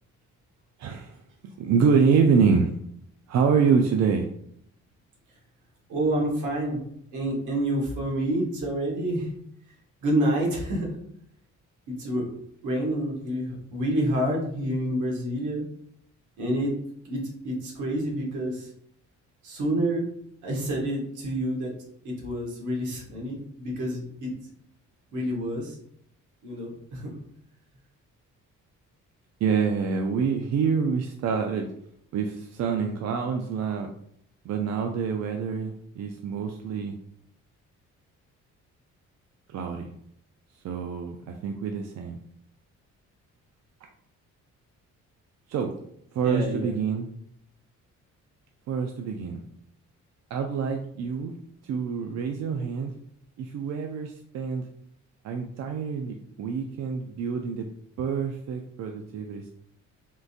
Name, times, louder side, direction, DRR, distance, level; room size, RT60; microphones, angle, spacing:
voice 1, 0.8-1.2 1.6-2.7 3.3-4.3 29.4-31.7 32.1-33.9 34.4-36.9 39.5-39.9 40.6-42.2 45.5-45.7 46.1-47.1 48.7-49.4 50.3-51.3 51.6-52.9 53.4-54.7 55.2-57.7 58.0-59.5, right 6 dB, 60° right, 3 dB, 0.4 m, -26 dB
voice 2, 5.9-6.8 7.1-9.3 10.0-10.9 11.9-12.2 12.6-15.6 16.4-16.7 17.0-18.7 19.4-20.1 20.4-21.7 22.0-24.3 25.1-25.8 26.4-27.1 46.2-46.7, right 1 dB, 80° right, -2 dB, 1.3 m, -28 dB
3.7 x 2.5 x 2.5 m, 0.70 s
cardioid pair, 90°, 30 cm